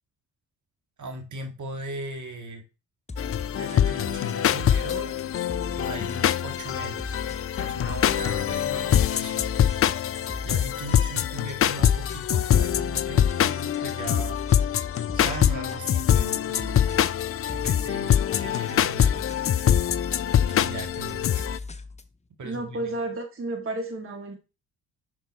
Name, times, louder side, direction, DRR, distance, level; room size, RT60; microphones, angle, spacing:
voice 1, 1.0-2.6 3.5-5.1 5.8-7.2 7.5-9.5 10.4-14.4 15.1-16.8 17.5-19.3 20.5-21.5 22.4-22.9, right 2 dB, 50° right, 1.8 m, -38 dB
sound 1, 3.1-22.2, left 3 dB, 20° left, 0.9 m, -39 dB
sound 2, 3.2-21.6, left 10 dB, 35° left, 0.5 m, -24 dB
voice 2, 22.4-24.4, right 2 dB, 35° right, 1.6 m, -32 dB
5.9 x 4.5 x 4.2 m
hypercardioid pair, 45°, 38 cm